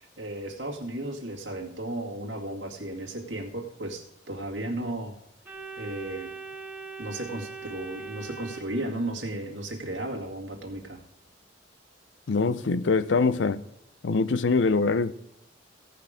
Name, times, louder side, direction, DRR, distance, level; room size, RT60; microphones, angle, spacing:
voice 1, 0.0-5.2 5.8-6.3 7.0-11.0, right 1 dB, 80° right, 2.0 m, -34 dB
Organ, 5.4-9.4, right 4 dB, 10° right, 1.4 m, -41 dB
voice 2, 12.3-13.6 14.0-15.1, left 4 dB, 80° left, 0.6 m, -23 dB
16.0 x 5.9 x 5.0 m
head